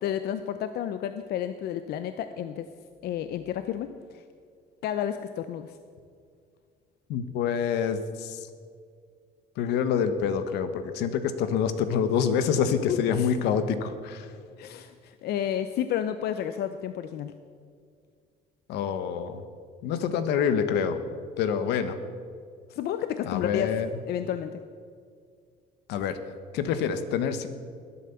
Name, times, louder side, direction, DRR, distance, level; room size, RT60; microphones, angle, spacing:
voice 1, 0.0-2.7 3.0-4.2 4.8-5.8 12.9-13.3 14.6-17.3 22.7-23.8 24.1-24.6, left 10 dB, 70° left, 10 dB, 0.7 m, -31 dB
voice 2, 7.1-8.5 9.6-14.3 18.7-19.4 19.8-21.0 21.4-22.0 23.2-23.9 25.9-26.2 26.5-27.5, left 7 dB, 90° left, 10 dB, 1.3 m, -26 dB
20.0 x 8.6 x 7.1 m, 2.1 s
cardioid pair, 110°, 17 cm